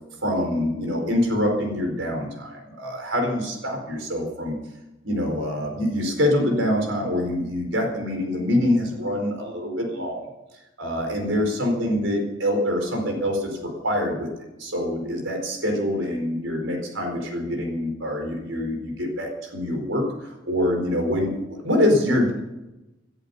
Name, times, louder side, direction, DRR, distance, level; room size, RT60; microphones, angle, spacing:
voice 1, 0.2-4.6 5.0-10.3 10.8-14.3 14.6-20.1 20.5-22.3, left 1 dB, 75° right, 3 dB, 4.6 m, -25 dB
18.5 x 11.0 x 5.5 m, 0.98 s
head